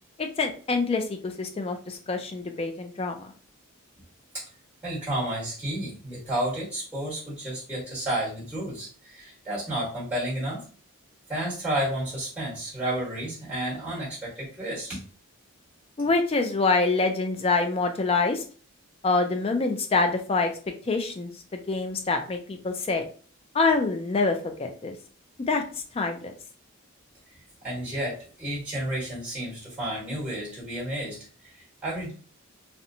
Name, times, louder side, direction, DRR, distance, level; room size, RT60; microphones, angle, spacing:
voice 1, 0.2-3.2 16.0-18.4 19.0-20.5 20.8-23.0 23.5-24.9 25.5-25.6 25.9-26.3, left 3 dB, 25° left, 5 dB, 0.3 m, -26 dB
voice 2, 4.8-10.6 11.3-15.0 27.6-32.1, right 1 dB, 5° right, -7 dB, 1.2 m, -31 dB
2.8 x 2.1 x 2.6 m, 0.40 s
head